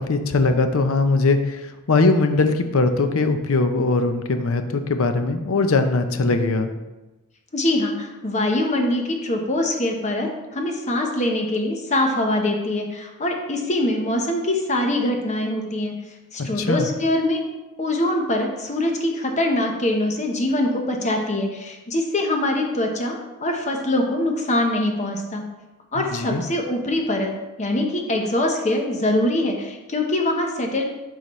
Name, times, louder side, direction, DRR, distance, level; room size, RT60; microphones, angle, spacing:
voice 1, 0.0-6.7 16.4-16.9 26.0-26.4, left 3 dB, 65° left, 7 dB, 0.6 m, -21 dB
voice 2, 7.5-15.9 16.3-17.4 17.8-25.4 25.9-27.3 27.6-30.8, left 1 dB, 30° left, 2 dB, 0.9 m, -23 dB
11.0 x 4.0 x 3.1 m, 1.1 s
head